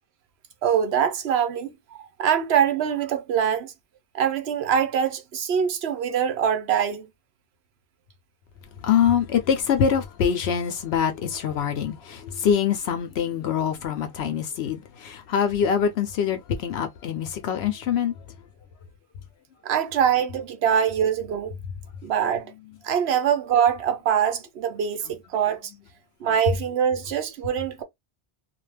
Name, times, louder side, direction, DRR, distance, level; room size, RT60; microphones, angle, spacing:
voice 1, 0.6-3.7 4.1-7.1 19.6-21.5 22.0-22.5 22.8-25.7 26.2-27.8, right 8 dB, 70° right, 0.9 m, -23 dB
voice 2, 8.8-18.1, left 8 dB, 75° left, 0.8 m, -24 dB
2.5 x 2.2 x 3.2 m
omnidirectional pair, 1.1 m